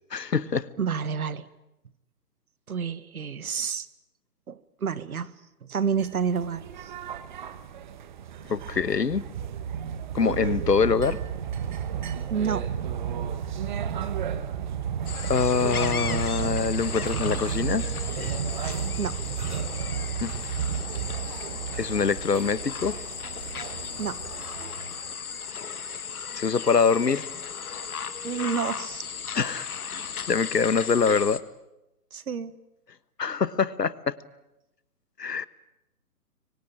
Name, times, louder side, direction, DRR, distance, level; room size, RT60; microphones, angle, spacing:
voice 1, 0.1-0.7 8.5-9.2 10.1-11.2 15.2-17.9 20.2-20.3 21.8-23.0 26.3-27.3 29.3-29.7 30.3-31.4 33.2-34.2 35.2-35.5, left 5 dB, 80° left, 17 dB, 1.5 m, -24 dB
voice 2, 0.8-1.5 2.7-3.9 4.5-5.3 5.6-6.9 12.3-12.7 19.0-19.2 24.0-24.2 28.2-29.0 32.1-32.5, right 6 dB, 60° right, 16 dB, 1.6 m, -29 dB
sound 1, 5.9-25.1, right 8 dB, 30° right, 1.2 m, -32 dB
sound 2, 15.1-31.4, left 6 dB, 65° left, 1.9 m, -36 dB
26.0 x 24.0 x 8.8 m, 0.93 s
figure-of-eight pair, 145°, 48 cm